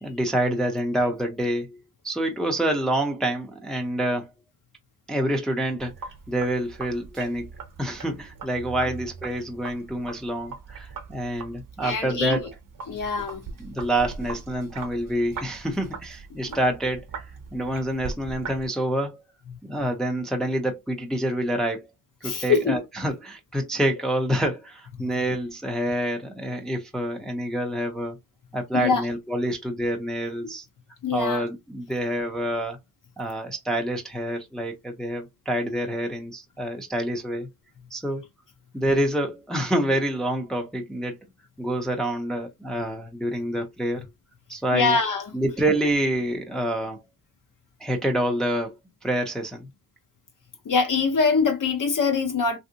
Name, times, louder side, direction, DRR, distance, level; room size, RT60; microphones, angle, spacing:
voice 1, 0.0-1.8 2.0-4.3 5.1-5.9 6.3-7.5 7.8-12.5 13.1-13.2 13.6-17.0 17.5-19.2 19.6-21.9 22.2-28.2 28.5-30.7 31.1-32.8 33.2-37.5 37.9-38.2 38.7-41.1 41.6-44.0 44.5-45.0 45.3-47.0 47.8-48.7 49.0-49.6, right 1 dB, ahead, 0.5 m, -27 dB
Sink (filling or washing), 5.8-18.7, right 5 dB, 55° right, 0.8 m, -40 dB
voice 2, 11.8-12.5 12.9-13.4 16.3-16.6 22.2-22.8 28.7-29.0 31.0-31.5 44.7-45.3 50.6-52.6, left 5 dB, 55° left, 0.8 m, -23 dB
3.3 x 2.6 x 2.7 m
wide cardioid pair, 180°, 39 cm